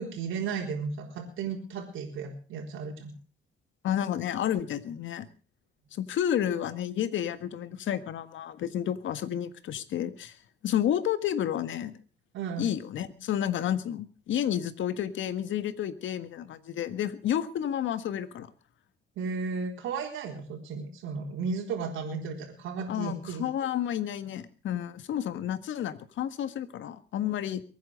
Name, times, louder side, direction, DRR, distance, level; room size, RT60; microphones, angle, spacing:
voice 1, 0.0-3.1 12.3-12.7 19.2-23.4, right 5 dB, 85° right, 1 dB, 4.0 m, -34 dB
voice 2, 3.8-5.3 5.9-10.4 10.6-11.9 12.6-18.5 22.9-27.6, left 10 dB, 75° left, 12 dB, 1.7 m, -31 dB
22.5 x 9.5 x 6.5 m, 0.38 s
cardioid pair, 90°, 20 cm